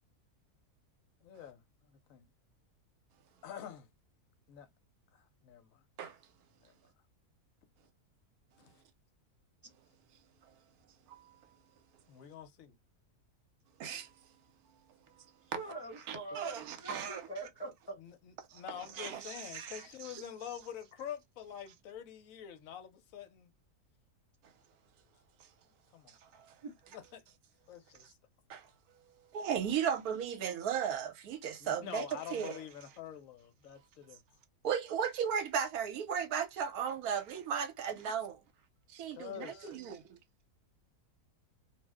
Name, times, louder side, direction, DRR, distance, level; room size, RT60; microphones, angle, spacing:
voice 1, 1.2-1.6 1.9-2.3 3.4-3.9 4.5-4.7 5.1-5.8 6.6-6.7 8.6-8.8 12.1-12.7 16.3-16.4 18.0-23.5 25.9-26.2 26.9-27.2 27.7-28.0 31.6-34.2 39.1-39.9, left 9 dB, 70° left, 1.0 m, -46 dB
voice 2, 13.8-14.1 16.1-17.3 18.9-19.8 20.1-20.2 26.1-26.4 28.5-28.7 29.3-32.6 34.6-38.4 38.9-40.2, right 8 dB, 80° right, 1.2 m, -36 dB
voice 3, 15.5-18.0 26.6-26.7 39.3-39.5, right 2 dB, 20° left, 1.1 m, -44 dB
2.6 x 2.0 x 3.4 m
omnidirectional pair, 1.6 m